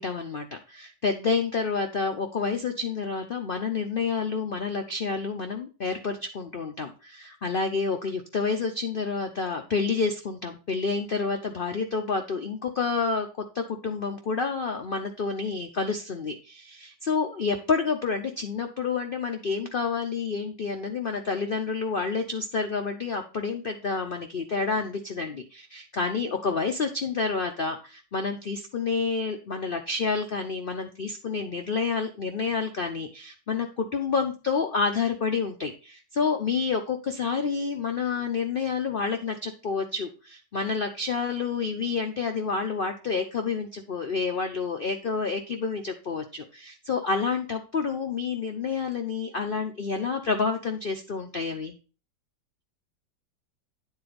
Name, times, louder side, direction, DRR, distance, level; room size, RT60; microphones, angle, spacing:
voice 1, 0.0-13.3 13.5-51.8, left 4 dB, 80° left, 5 dB, 0.4 m, -29 dB
9.4 x 4.0 x 5.0 m, 0.35 s
omnidirectional pair, 1.9 m